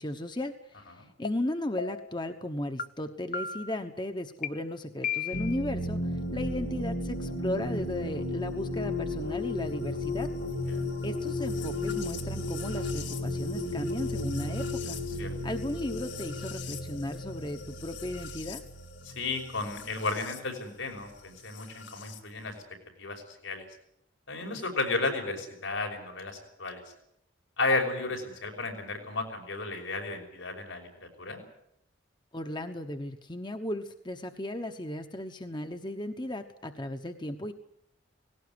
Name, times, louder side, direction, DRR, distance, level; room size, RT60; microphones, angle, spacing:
voice 1, 0.0-10.3 11.0-15.0 15.4-18.6 24.5-24.6 32.3-37.5, left 1 dB, 25° left, 7 dB, 1.1 m, -36 dB
sound 1, 1.2-1.3 1.8-2.2 2.8-2.9 3.3-3.8 4.4-4.5 5.0-5.6, left 7 dB, 40° left, 0.8 m, -34 dB
sound 2, 5.3-20.4 21.5-22.2, left 2 dB, 65° left, 2.6 m, -34 dB
voice 2, 19.1-22.6 23.0-23.6 24.3-26.8 27.6-31.4, left 3 dB, 90° left, 3 dB, 5.8 m, -33 dB
19.0 x 17.5 x 9.6 m, 0.76 s
head